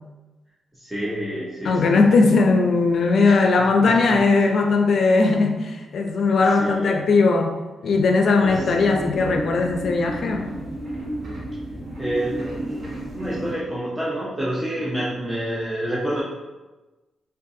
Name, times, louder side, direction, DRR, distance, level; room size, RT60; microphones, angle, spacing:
voice 1, 0.7-2.0 3.2-4.6 6.5-7.0 8.4-8.6 12.0-16.2, right 1 dB, 5° right, -8 dB, 0.5 m, -29 dB
voice 2, 1.6-7.5 7.8-10.6, left 3 dB, 55° left, 3 dB, 0.4 m, -19 dB
sound 1, 8.4-13.5, right 1 dB, 50° right, 1.1 m, -32 dB
3.6 x 2.4 x 2.5 m, 1.2 s
wide cardioid pair, 135°, 0 cm